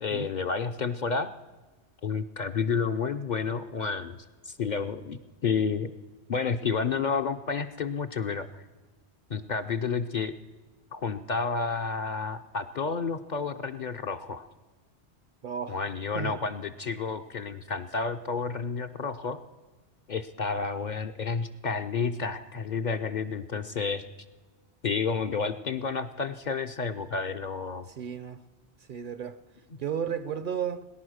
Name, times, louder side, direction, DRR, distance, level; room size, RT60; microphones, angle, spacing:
voice 1, 0.0-1.3 2.0-5.9 6.3-8.6 9.3-10.4 10.9-14.4 15.7-19.4 20.1-24.0 24.8-27.9, left 5 dB, 50° left, 0.6 m, -30 dB
voice 2, 15.4-15.8 16.1-16.4 27.9-28.4 28.9-29.4 29.8-30.9, right 8 dB, 55° right, 0.7 m, -33 dB
18.5 x 10.5 x 6.4 m
omnidirectional pair, 1.1 m